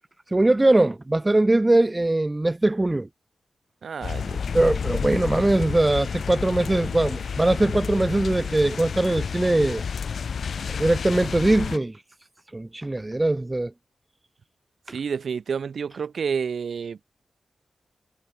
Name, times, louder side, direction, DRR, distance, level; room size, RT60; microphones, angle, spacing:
voice 1, 0.3-3.1 4.5-9.8 10.8-11.9 12.5-13.7 14.9-15.0, right 2 dB, 15° right, 1.3 m, -21 dB
voice 2, 3.8-4.5 14.9-17.0, right 6 dB, 65° right, 2.1 m, -29 dB
sound 1, 4.0-11.8, left 6 dB, 65° left, 2.4 m, -30 dB
wide cardioid pair, 140°, 0 cm